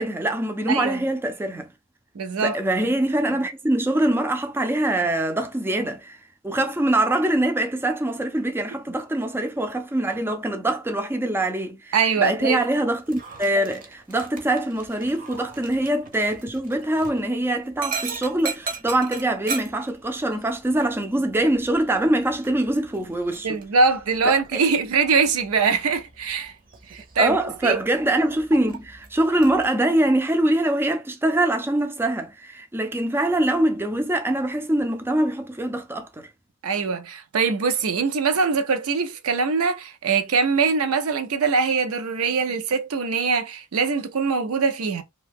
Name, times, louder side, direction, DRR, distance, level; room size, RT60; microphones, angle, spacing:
voice 1, 0.0-1.7 2.4-6.2 6.4-23.6 24.2-24.6 27.2-36.3, right 1 dB, 10° right, 0.4 m, -23 dB
voice 2, 0.7-1.0 2.1-2.6 11.9-12.6 15.4-15.5 18.1-18.2 23.4-26.5 26.9-27.4 27.6-27.8 36.6-45.0, right 5 dB, 80° right, 0.5 m, -22 dB
Dog, 13.0-29.6, right 5 dB, 40° right, 0.7 m, -39 dB
2.7 x 2.3 x 3.4 m
head